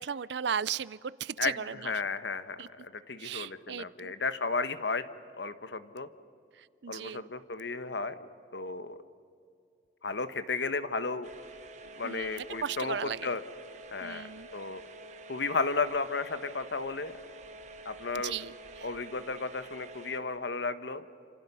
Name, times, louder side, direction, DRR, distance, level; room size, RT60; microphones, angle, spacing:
voice 1, 0.0-1.9 2.6-2.7 3.2-4.1 6.6-7.2 12.0-13.3 14.0-14.5 18.2-18.9, right 7 dB, 70° right, 20 dB, 0.5 m, -36 dB
voice 2, 1.4-5.0 5.3-6.1 6.9-8.2 8.5-9.0 10.0-11.3 12.0-13.4 13.9-14.3 14.5-14.8 15.3-17.1 17.8-18.3 18.8-21.1, left 4 dB, 70° left, 12 dB, 1.1 m, -33 dB
sound 1, 11.2-20.2, right 2 dB, 40° right, 1.7 m, -48 dB
29.0 x 27.0 x 5.5 m, 2.5 s
head